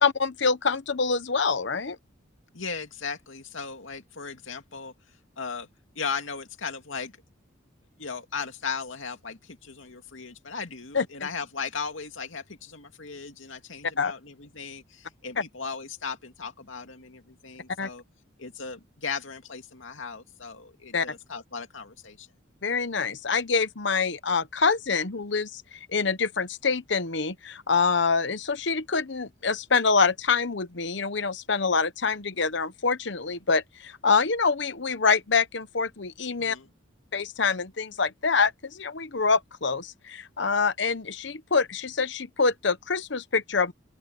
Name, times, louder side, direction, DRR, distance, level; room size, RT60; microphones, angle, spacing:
voice 1, 0.0-2.0 10.9-11.1 14.0-14.1 17.8-17.9 20.9-21.1 22.6-36.6 37.1-43.7, left 5 dB, 60° left, 1.0 m, -25 dB
voice 2, 2.5-4.9 5.4-5.7 5.9-7.1 8.0-18.0 18.4-22.3 36.4-36.7, left 5 dB, 80° left, 2.4 m, -37 dB
open air
head